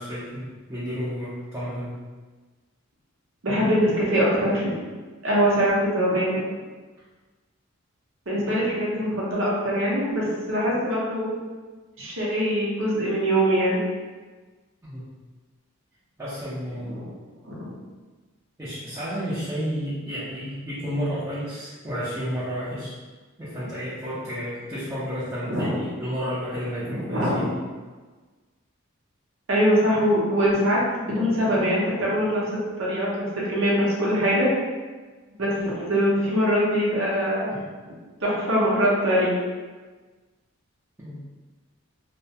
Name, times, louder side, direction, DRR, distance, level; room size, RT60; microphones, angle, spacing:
voice 1, 0.0-1.9 14.8-15.1 16.2-17.0 18.6-22.9 23.4-27.6 37.5-37.6 41.0-41.2, equal, 15° right, -12 dB, 0.5 m, -31 dB
voice 2, 3.4-4.8 5.2-6.5 8.3-11.3 12.0-13.8 16.8-17.1 17.5-17.7 23.6-23.7 25.5-25.8 26.9-27.5 29.5-32.5 32.8-34.5 35.3-37.5 38.2-39.3, equal, 65° right, -6 dB, 0.7 m, -23 dB
2.3 x 2.1 x 2.7 m, 1.3 s
head